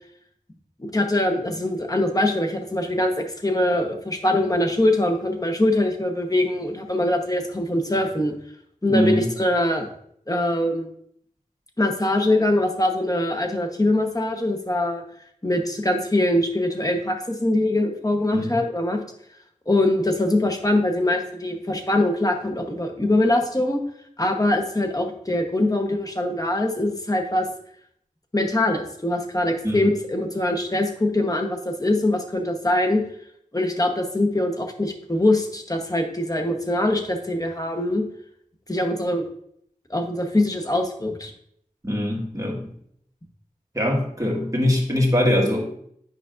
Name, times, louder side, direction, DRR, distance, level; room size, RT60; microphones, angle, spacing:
voice 1, 0.8-8.3 8.8-9.9 10.3-10.9 11.8-15.0 15.4-19.0 19.7-23.8 24.2-27.5 28.3-33.0 33.5-38.0 38.7-39.3 39.9-41.3, left 1 dB, 25° left, 3 dB, 1.0 m, -23 dB
voice 2, 8.9-9.3 18.3-18.5 29.6-29.8 41.8-42.7 43.7-45.6, left 1 dB, 25° right, -2 dB, 1.6 m, -22 dB
9.4 x 5.0 x 2.5 m, 0.69 s
wide cardioid pair, 45°, 14 cm